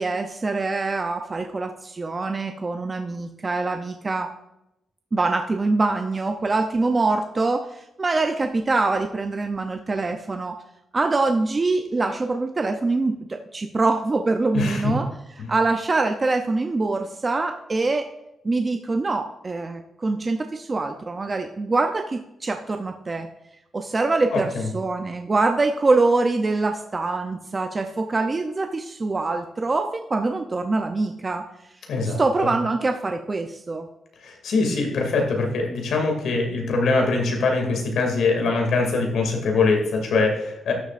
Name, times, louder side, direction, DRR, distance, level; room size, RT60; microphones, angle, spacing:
voice 1, 0.0-4.3 5.1-10.6 10.9-15.1 15.5-18.1 18.4-23.3 23.7-31.7 32.0-33.9, right 3 dB, 30° right, 5 dB, 0.5 m, -24 dB
voice 2, 14.5-14.9 15.4-15.5 24.3-24.7 31.9-32.5 34.2-40.7, left 3 dB, 85° left, 2 dB, 2.3 m, -23 dB
12.5 x 7.3 x 2.5 m, 0.86 s
cardioid pair, 125°, 0 cm